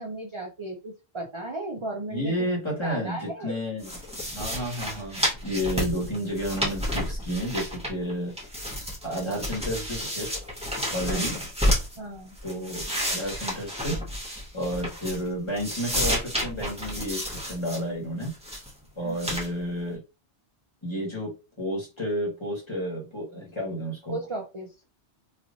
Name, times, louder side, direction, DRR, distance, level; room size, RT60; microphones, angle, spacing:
voice 1, 0.0-2.3 2.8-3.6 11.1-11.2 12.0-12.4 19.0-19.2 24.1-24.7, right 2 dB, 35° right, 0.6 m, -35 dB
voice 2, 2.1-3.9 4.3-8.3 9.0-10.3 10.9-11.5 12.4-14.1 14.5-18.3 18.9-20.0 20.8-24.2, equal, 25° left, 1.4 m, -31 dB
sound 1, 3.8-8.1 8.4-12.0 12.4-15.3 15.6-17.8 18.2-18.7 19.2-19.5, equal, 5° right, 1.1 m, -31 dB
3.3 x 2.9 x 2.6 m
omnidirectional pair, 1.2 m